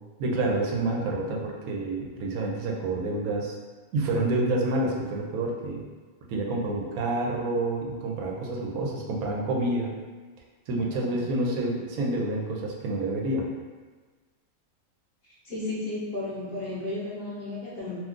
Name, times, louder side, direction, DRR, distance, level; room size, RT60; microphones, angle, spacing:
voice 1, 0.2-3.6 3.9-5.8 6.3-9.9 10.7-13.5, right 2 dB, 80° right, -1 dB, 1.0 m, -28 dB
voice 2, 15.4-18.0, left 2 dB, 50° left, -8 dB, 0.9 m, -33 dB
2.6 x 2.3 x 3.5 m, 1.4 s
omnidirectional pair, 1.5 m